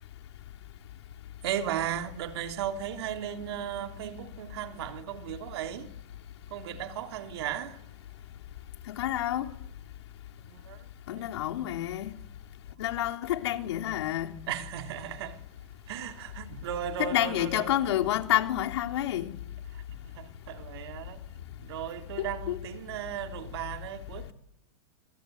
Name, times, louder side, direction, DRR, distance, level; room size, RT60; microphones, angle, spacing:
voice 1, 1.4-5.9 6.5-7.8 10.4-10.9 11.2-11.3 14.5-15.4 15.9-17.7 19.7-21.2 21.6-24.3, right 10 dB, 60° right, 3.3 m, -36 dB
voice 2, 8.9-9.5 11.1-12.1 12.8-14.3 17.0-19.3 22.2-22.6, left 13 dB, 70° left, 3.5 m, -29 dB
26.5 x 26.0 x 8.0 m
supercardioid pair, 165°, 15 cm